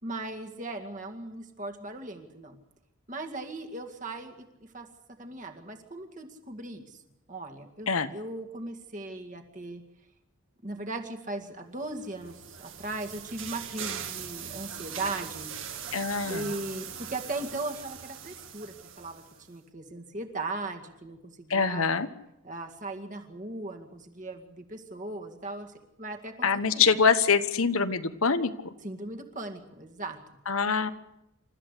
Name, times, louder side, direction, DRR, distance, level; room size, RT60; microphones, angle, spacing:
voice 1, 0.0-2.6 3.1-4.9 5.2-7.0 7.3-9.8 10.6-15.5 16.3-21.9 22.4-26.9 28.8-30.2, right 2 dB, 35° right, 4 dB, 2.1 m, -38 dB
sound 1, 11.9-19.4, right 8 dB, 60° right, 1.9 m, -40 dB
voice 2, 15.9-16.5 21.5-22.1 26.4-28.5 30.5-30.9, left 5 dB, 75° left, 10 dB, 1.2 m, -24 dB
28.0 x 13.5 x 8.3 m, 0.87 s
head